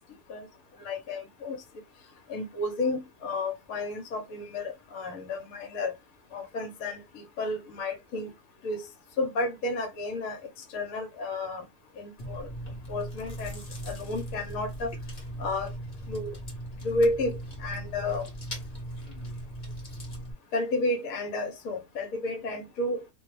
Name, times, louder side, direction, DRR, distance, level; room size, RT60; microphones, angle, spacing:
voice 1, 0.8-1.6 2.3-5.9 6.3-8.3 8.6-8.8 9.2-10.4 10.7-11.6 12.0-12.5 12.9-14.9 15.4-15.7 16.1-16.3 16.8-18.3 20.5-23.0, left 2 dB, 70° left, 1.1 m, -31 dB
Chewing mastication, 12.2-20.3, right 1 dB, 35° left, 1.0 m, -39 dB
2.5 x 2.2 x 3.1 m
omnidirectional pair, 1.6 m